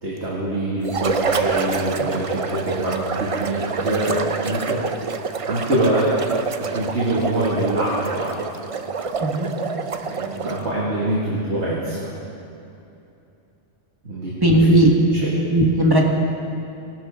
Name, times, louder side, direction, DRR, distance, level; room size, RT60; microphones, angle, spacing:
voice 1, 0.0-4.9 5.5-6.2 6.6-8.4 9.8-12.1 14.0-14.6 15.1-15.3, right 1 dB, 65° right, -7 dB, 2.5 m, -24 dB
sound 1, 0.8-10.7, right 5 dB, 45° right, 0.5 m, -27 dB
voice 2, 9.2-9.5 14.4-14.9 15.2-16.0, right 1 dB, 20° right, 0 dB, 1.5 m, -17 dB
20.5 x 12.0 x 3.7 m, 2.7 s
omnidirectional pair, 1.2 m